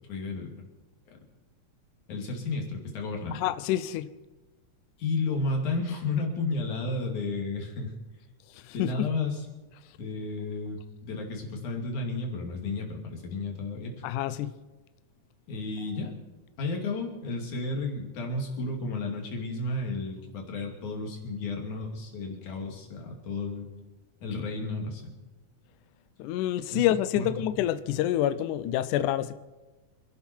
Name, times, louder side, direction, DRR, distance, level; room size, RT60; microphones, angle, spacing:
voice 1, 0.1-0.5 2.1-3.4 5.0-7.9 8.7-9.4 10.0-14.0 15.5-16.1 16.6-23.7 24.2-25.1 26.7-26.9 27.1-27.3, left 3 dB, 60° left, 4.0 m, -32 dB
voice 2, 3.3-4.1 8.5-9.1 14.0-14.5 26.2-29.3, left 12 dB, 75° left, 2.0 m, -27 dB
27.0 x 11.5 x 4.6 m
omnidirectional pair, 4.0 m